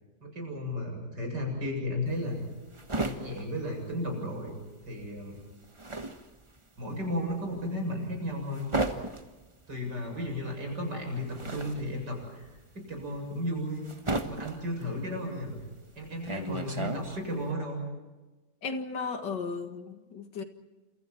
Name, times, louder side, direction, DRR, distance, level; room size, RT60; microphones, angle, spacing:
voice 1, 0.2-2.4 3.0-4.5 4.9-5.4 6.8-8.7 9.7-13.9 14.2-15.6 16.0-17.8, left 1 dB, 80° right, 2 dB, 8.4 m, -34 dB
sound 1, 2.1-4.6 4.9-17.5, right 2 dB, 20° right, 1.4 m, -36 dB
voice 2, 18.6-20.4, left 4 dB, 85° left, 7 dB, 2.5 m, -35 dB
29.0 x 28.0 x 4.5 m, 1.2 s
omnidirectional pair, 1.8 m